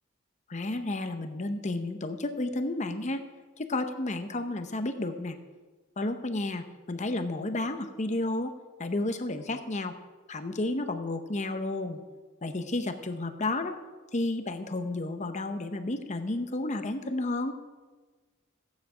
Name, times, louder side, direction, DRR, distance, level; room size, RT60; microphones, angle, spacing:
voice 1, 0.5-3.2 3.6-5.4 6.0-8.5 8.8-9.9 10.3-12.0 12.4-13.8 14.1-17.5, left 2 dB, 35° left, 8 dB, 0.8 m, -31 dB
14.5 x 9.6 x 5.0 m, 1.3 s
head